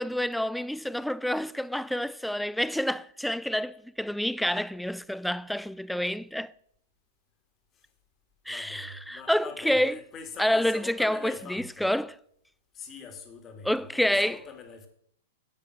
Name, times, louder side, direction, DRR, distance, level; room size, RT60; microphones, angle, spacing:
voice 1, 0.0-6.5 8.5-9.9 10.4-12.1 13.7-14.4, left 1 dB, ahead, 0.4 m, -28 dB
voice 2, 8.5-11.9 12.7-14.9, left 5 dB, 25° left, 2.4 m, -44 dB
10.5 x 8.4 x 6.3 m
figure-of-eight pair, 105°, 0 cm